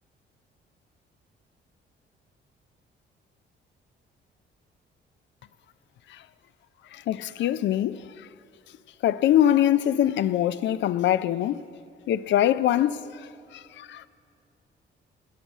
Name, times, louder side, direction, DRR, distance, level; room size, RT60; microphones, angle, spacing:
voice 1, 6.9-8.3 9.0-11.6 12.1-14.1, left 11 dB, 65° left, 0.4 m, -24 dB
9.3 x 8.8 x 8.2 m
cardioid pair, 90°, 20 cm